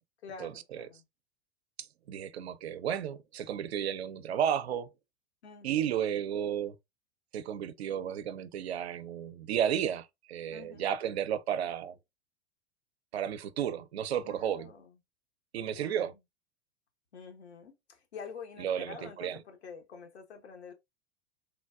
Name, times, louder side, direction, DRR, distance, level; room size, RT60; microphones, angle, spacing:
voice 1, 0.2-1.1 5.4-5.9 10.5-10.9 14.2-15.0 15.6-16.2 17.1-20.7, left 5 dB, 75° left, 0.9 m, -48 dB
voice 2, 2.1-4.9 5.6-6.8 7.3-12.0 13.1-14.7 15.5-16.1 18.6-19.4, right 9 dB, 75° right, 0.5 m, -33 dB
3.2 x 2.2 x 2.2 m
figure-of-eight pair, 90°, 33 cm